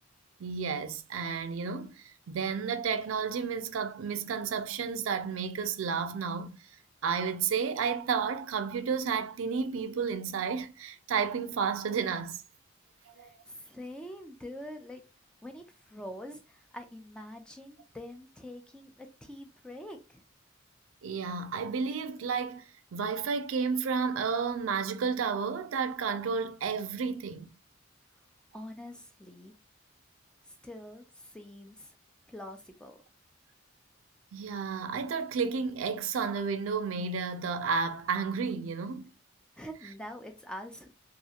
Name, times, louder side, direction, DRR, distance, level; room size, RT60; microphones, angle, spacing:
voice 1, 0.4-6.5 7.0-12.4 13.1-13.3 21.0-27.5 34.3-39.1, right 5 dB, 90° right, 0.4 m, -32 dB
voice 2, 13.2-15.0 15.4-20.2 28.5-29.5 30.5-31.9 32.3-33.0 39.6-40.9, left 1 dB, 5° left, 0.3 m, -45 dB
2.8 x 2.4 x 2.4 m
head